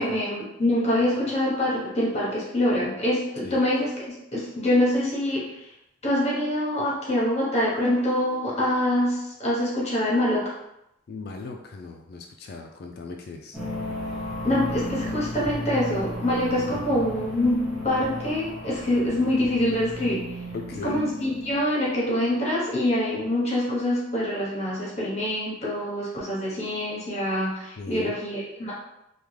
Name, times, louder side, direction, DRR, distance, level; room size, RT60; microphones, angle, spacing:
voice 1, 0.0-5.7 6.0-10.5 14.4-17.6 17.8-20.2 20.8-28.7, left 1 dB, 35° left, -5 dB, 0.9 m, -25 dB
voice 2, 11.1-13.6 14.0-14.2 16.7-16.8 20.5-21.0 27.8-28.1, left 3 dB, 55° left, 3 dB, 0.3 m, -38 dB
sound 1, 13.5-21.8, left 1 dB, 5° right, 0.7 m, -34 dB
3.5 x 2.3 x 3.2 m, 0.84 s
head